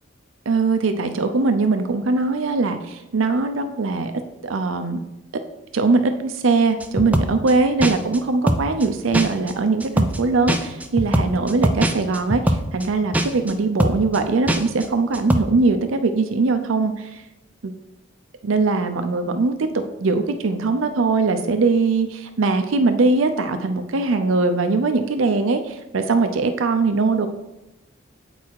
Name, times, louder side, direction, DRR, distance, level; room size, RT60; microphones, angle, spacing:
voice 1, 0.5-4.1 4.4-5.0 5.7-17.2 17.6-17.7 18.4-27.3, right 3 dB, 80° right, 7 dB, 0.5 m, -21 dB
sound 1, 6.8-7.5 7.8-8.2 8.5-8.9 9.1-9.5 9.8-10.2 10.5-12.9 13.1-13.5 13.8-14.2 14.5-14.9 15.1-15.4, right 1 dB, 10° right, 0.4 m, -21 dB
8.4 x 4.0 x 4.6 m, 0.96 s
head